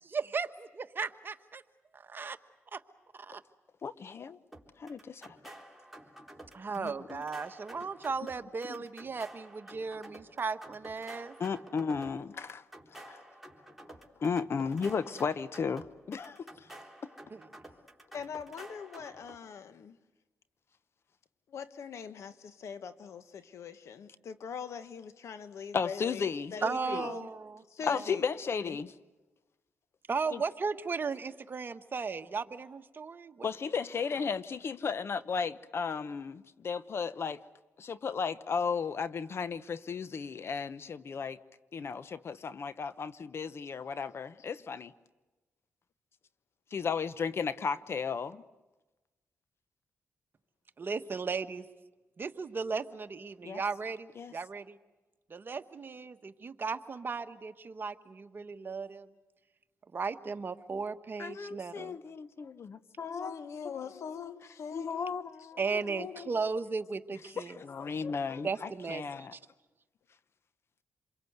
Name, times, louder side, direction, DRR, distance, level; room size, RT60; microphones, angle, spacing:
voice 1, 0.0-1.6 1.9-2.4 2.7-2.8 3.1-3.4 6.5-11.3 17.3-17.4 26.6-27.6 27.9-28.0 30.1-33.5 50.8-51.7 52.2-54.8 55.3-59.1 59.9-62.0 65.6-67.6 68.4-69.4, right 4 dB, 45° right, 1.3 m, -36 dB
voice 2, 3.8-4.4 4.8-5.5 6.8-7.2 8.7-8.8 11.4-12.6 13.0-13.2 14.2-16.7 25.7-27.0 27.9-28.9 30.3-30.4 33.4-37.4 37.8-41.4 41.7-44.9 46.7-48.4 53.4-53.6 54.2-54.3 61.2-64.1 64.7-65.6 67.4-69.3, left 5 dB, 55° left, 0.9 m, -35 dB
sound 1, 4.5-19.4, right 1 dB, 5° right, 3.7 m, -51 dB
voice 3, 18.1-20.0 21.5-27.3 27.7-28.2 28.7-28.8 61.3-61.4 63.0-65.3 65.7-66.3, left 7 dB, 75° left, 1.4 m, -42 dB
27.5 x 23.0 x 8.1 m
cardioid pair, 70°, 5 cm